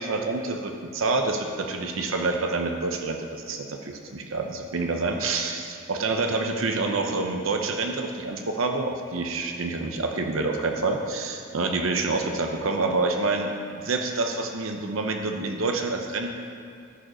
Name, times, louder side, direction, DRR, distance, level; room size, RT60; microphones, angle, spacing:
voice 1, 0.0-16.3, right 3 dB, 85° right, 4 dB, 0.8 m, -27 dB
13.0 x 5.2 x 4.9 m, 2.3 s
head